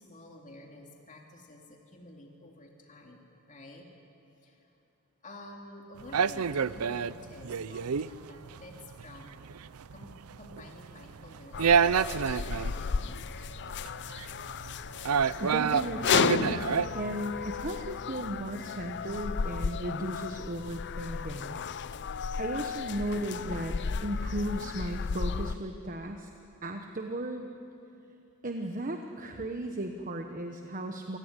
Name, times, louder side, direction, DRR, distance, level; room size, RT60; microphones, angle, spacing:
voice 1, 0.0-3.9 4.4-4.7 5.2-9.3 9.9-13.2, left 1 dB, 35° left, 1 dB, 2.6 m, -50 dB
sound 1, 6.0-17.4, right 6 dB, 85° right, 0.5 m, -29 dB
sound 2, 11.5-25.6, left 6 dB, 55° left, 0.5 m, -34 dB
voice 2, 15.4-16.6 16.9-21.6 22.4-26.3 26.6-27.5 28.4-31.2, right 1 dB, 40° right, 4 dB, 1.2 m, -35 dB
27.5 x 18.0 x 10.0 m, 2.8 s
head